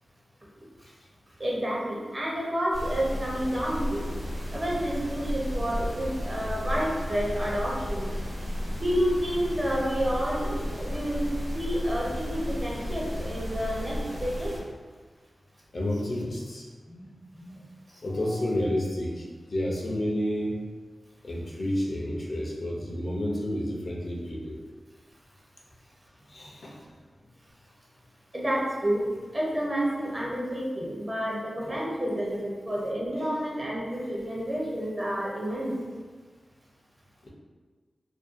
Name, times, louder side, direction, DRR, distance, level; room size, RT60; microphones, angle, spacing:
voice 1, 1.4-4.1 4.5-8.1 8.8-11.3 11.5-14.5 16.9-17.1 17.3-17.6 17.9-18.5 26.7-26.8 28.3-29.0 29.3-35.8, equal, 30° right, -4 dB, 0.6 m, -30 dB
sound 1, 2.7-14.6, equal, 80° right, 0.9 m, -33 dB
voice 2, 15.7-16.7 18.0-20.6 21.2-24.6 26.3-26.8 31.7-31.8 33.2-33.3 37.2-37.3, left 1 dB, 60° left, -2 dB, 0.5 m, -30 dB
2.6 x 2.2 x 2.5 m, 1.4 s
wide cardioid pair, 80°, 0 cm